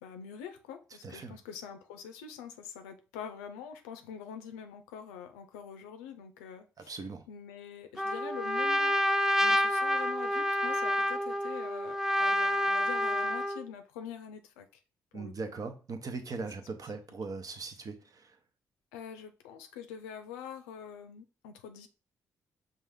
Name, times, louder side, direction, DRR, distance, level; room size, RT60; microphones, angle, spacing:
voice 1, 0.0-9.0 9.4-14.7 15.1-15.5 16.4-16.5 18.9-21.9, left 8 dB, 85° left, 0.4 m, -45 dB
voice 2, 1.0-1.4 6.9-7.2 15.1-18.3, right 4 dB, 45° right, 0.9 m, -40 dB
Trumpet, 8.0-13.6, left 1 dB, 5° right, 0.4 m, -28 dB
5.3 x 2.5 x 3.6 m
hypercardioid pair, 45°, 8 cm